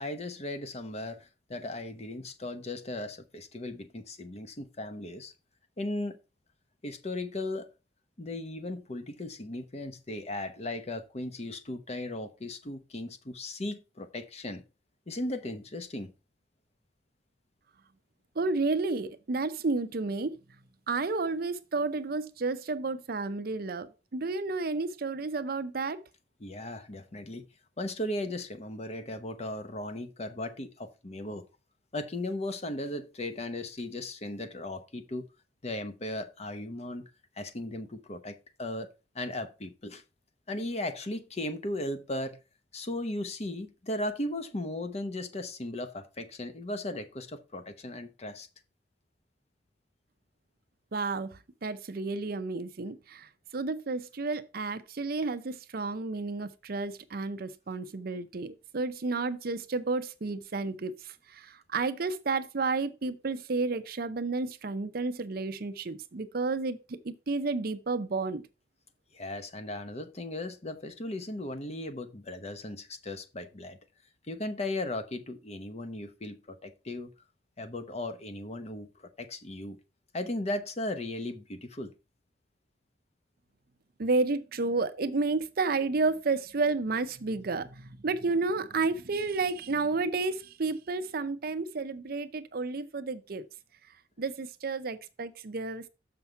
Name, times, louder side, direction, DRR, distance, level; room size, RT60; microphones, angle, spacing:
voice 1, 0.0-5.3 5.8-6.2 6.8-7.7 8.2-14.6 15.1-16.1 26.4-27.5 27.8-31.4 31.9-35.3 35.6-37.1 37.4-40.0 40.5-42.4 42.7-48.5 69.1-73.8 74.3-77.1 77.6-78.9 79.2-79.8 80.1-81.9 94.2-94.3, left 1 dB, 35° left, 0.9 m, -37 dB
voice 2, 18.4-20.4 20.9-26.0 50.9-60.9 61.3-68.4 84.0-93.4 94.2-95.9, right 3 dB, 55° right, 0.6 m, -31 dB
6.7 x 5.7 x 4.4 m
head